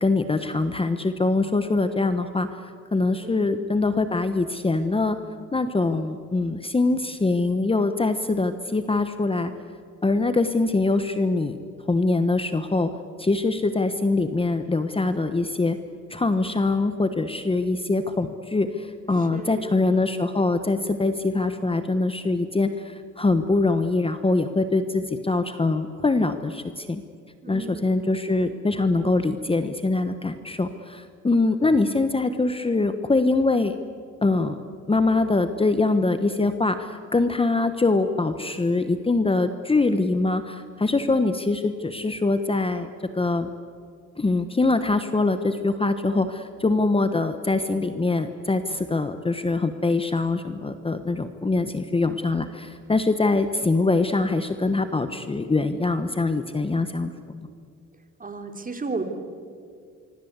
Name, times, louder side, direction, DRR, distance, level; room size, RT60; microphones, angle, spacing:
voice 1, 0.0-2.5 2.9-5.2 5.5-9.5 10.0-11.6 11.9-12.9 13.2-15.8 16.1-27.0 27.5-33.7 34.2-43.5 44.2-57.1, left 3 dB, 20° left, 9 dB, 1.1 m, -23 dB
voice 2, 3.2-3.7 19.2-19.8 27.4-28.0 58.2-59.0, right 3 dB, 30° right, 5 dB, 3.2 m, -34 dB
25.0 x 24.5 x 8.1 m, 2.2 s
cardioid pair, 90°, 30 cm